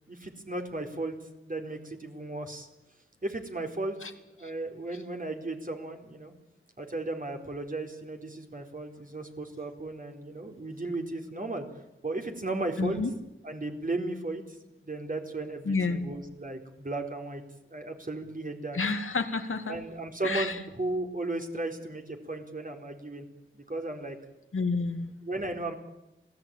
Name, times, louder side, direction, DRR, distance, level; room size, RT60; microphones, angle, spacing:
voice 1, 0.1-1.1 1.4-2.7 3.2-4.0 4.4-6.3 6.8-11.6 12.0-13.0 13.4-14.6 14.8-17.4 17.7-18.8 19.7-23.3 23.5-24.2 25.2-25.8, right 2 dB, 40° right, 3 dB, 4.3 m, -35 dB
voice 2, 12.8-13.1 15.7-16.1 18.7-19.8 20.2-20.5 24.5-25.1, left 4 dB, 80° left, 7 dB, 2.3 m, -29 dB
27.5 x 17.5 x 9.1 m, 0.95 s
wide cardioid pair, 55°, 21 cm